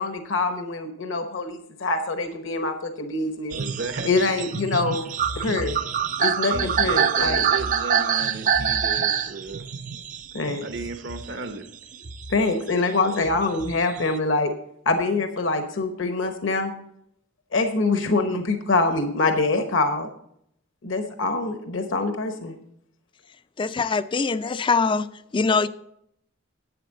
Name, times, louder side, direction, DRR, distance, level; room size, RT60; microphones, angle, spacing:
voice 1, 0.0-3.6 4.0-5.8 6.2-7.4 10.3-10.7 12.3-14.5 14.9-16.7 17.5-20.1 20.8-22.5, left 3 dB, 70° left, 1.0 m, -24 dB
sound 1, 3.5-11.5 11.9-14.2, right 7 dB, 40° right, 0.5 m, -26 dB
voice 2, 3.5-4.5 6.5-9.7 10.6-11.7, right 3 dB, 60° right, 1.0 m, -35 dB
voice 3, 23.6-25.7, left 4 dB, 25° left, 0.4 m, -23 dB
11.0 x 8.5 x 4.0 m
head